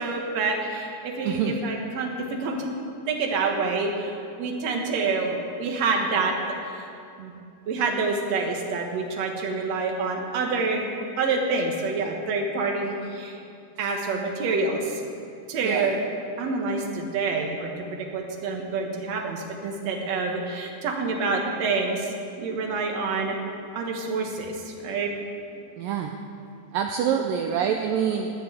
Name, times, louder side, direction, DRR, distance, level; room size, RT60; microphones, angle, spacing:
voice 1, 0.0-2.1 2.4-2.7 3.1-6.3 6.7-6.9 7.2-7.3 7.7-10.9 11.2-13.4 13.8-15.0 15.5-16.0 16.4-17.7 18.0-23.4 23.7-25.1, right 4 dB, 60° right, 1 dB, 2.0 m, -27 dB
voice 2, 1.2-1.6 15.6-15.9 25.8-26.1 26.7-28.3, right 8 dB, 90° right, 4 dB, 2.0 m, -26 dB
19.5 x 6.8 x 7.9 m, 2.5 s
omnidirectional pair, 4.8 m